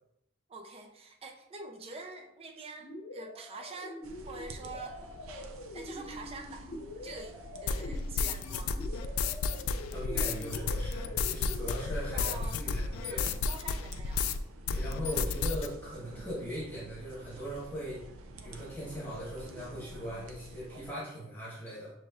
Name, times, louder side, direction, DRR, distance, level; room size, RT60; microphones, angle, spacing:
voice 1, 0.5-5.0 5.7-7.4 7.6-8.8 12.1-14.3 15.0-15.4, right 3 dB, 30° right, 4 dB, 0.4 m, -46 dB
sound 1, 2.8-12.3, left 2 dB, 50° left, 0.7 m, -45 dB
sound 2, 4.0-20.9, right 1 dB, 85° right, 0.5 m, -49 dB
sound 3, 7.7-14.4 14.7-15.7, left 5 dB, 85° left, 0.3 m, -32 dB
voice 2, 9.9-13.3 14.7-18.0 18.4-21.9, equal, 10° left, -7 dB, 1.2 m, -40 dB
6.0 x 3.0 x 2.4 m, 0.83 s
head